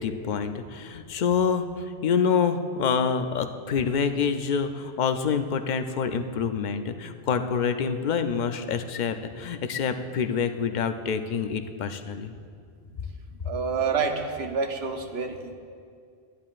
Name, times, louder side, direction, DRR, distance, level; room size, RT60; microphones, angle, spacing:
voice 1, 0.0-12.3, left 6 dB, 55° left, 8 dB, 0.6 m, -27 dB
voice 2, 13.4-15.5, right 5 dB, 90° right, 4 dB, 1.1 m, -28 dB
14.5 x 10.5 x 2.4 m, 2.2 s
omnidirectional pair, 1.0 m